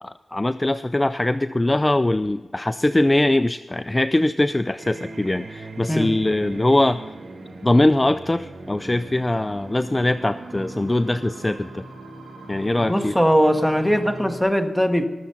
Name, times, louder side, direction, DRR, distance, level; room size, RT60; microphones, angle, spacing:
voice 1, 0.0-7.0 7.6-11.8 12.5-13.2, left 1 dB, 20° left, 11 dB, 0.4 m, -21 dB
sound 1, 4.8-14.4, right 2 dB, 90° right, 2.6 m, -39 dB
voice 2, 12.8-15.0, equal, ahead, 6 dB, 1.5 m, -20 dB
19.5 x 7.5 x 5.6 m, 1.3 s
cardioid pair, 60°, 0 cm